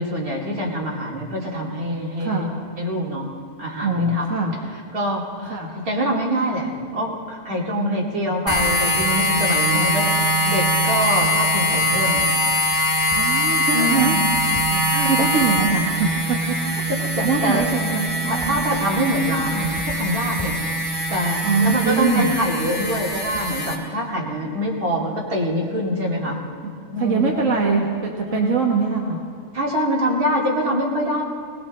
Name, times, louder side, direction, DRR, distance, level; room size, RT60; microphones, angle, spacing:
voice 1, 0.0-3.3 3.6-4.4 4.9-10.2 10.4-12.3 13.7-14.2 14.7-15.3 16.9-17.7 18.2-20.6 20.9-26.4 26.9-27.3 28.2-28.4 29.5-31.2, equal, 80° right, -3 dB, 2.9 m, -25 dB
voice 2, 2.2-2.5 3.8-4.5 5.5-5.7 7.7-8.3 9.7-9.9 13.1-14.1 15.1-16.1 16.5-16.9 17.2-18.6 21.4-22.3 27.0-29.2, right 4 dB, 60° right, -1 dB, 1.7 m, -23 dB
sound 1, 8.5-23.8, equal, 15° right, 2.9 m, -22 dB
21.5 x 19.0 x 3.2 m, 2.1 s
omnidirectional pair, 1.5 m